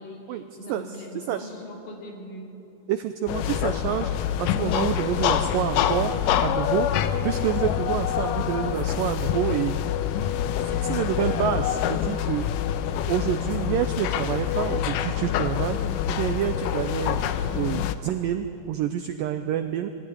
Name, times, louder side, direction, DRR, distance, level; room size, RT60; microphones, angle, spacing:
voice 1, 0.0-2.5, left 1 dB, 55° left, -1 dB, 4.3 m, -41 dB
voice 2, 0.7-1.5 2.9-4.1 4.4-6.1 6.4-6.9 7.2-9.8 10.6-12.5 13.1-15.8 16.1-17.2 17.5-19.9, right 11 dB, 90° right, 8 dB, 1.9 m, -28 dB
sound 1, 3.3-18.0, left 10 dB, 90° left, 1.9 m, -26 dB
23.5 x 15.5 x 9.6 m, 3.0 s
omnidirectional pair, 4.8 m